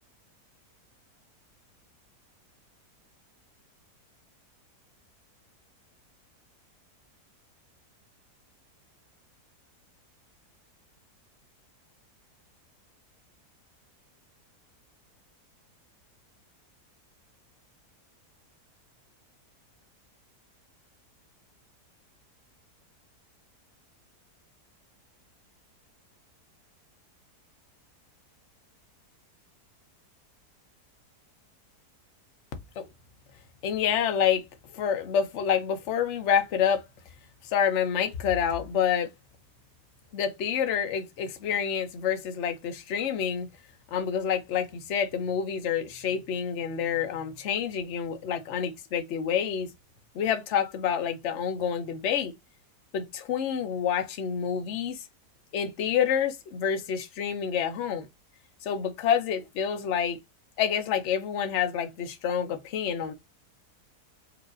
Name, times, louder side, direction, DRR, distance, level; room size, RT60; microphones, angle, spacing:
voice 1, 33.6-34.4 34.7-36.8 37.4-39.1 40.1-43.5 43.9-49.7 50.1-52.3 52.9-55.0 55.5-58.1 58.6-60.2 60.6-63.1, left 8 dB, 55° left, 0.9 m, -28 dB
4.8 x 2.5 x 2.4 m
omnidirectional pair, 1.7 m